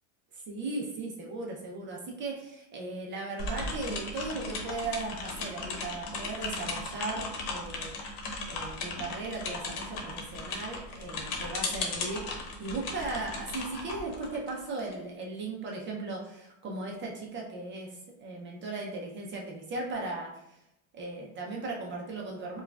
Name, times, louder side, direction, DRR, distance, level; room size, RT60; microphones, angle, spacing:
voice 1, 0.3-7.9 8.5-20.6 20.9-22.6, right 3 dB, 25° right, -1 dB, 0.5 m, -37 dB
sound 1, 3.4-14.9, left 3 dB, 90° left, 0.9 m, -37 dB
4.6 x 2.3 x 2.2 m, 0.87 s
cardioid pair, 150°, 45 cm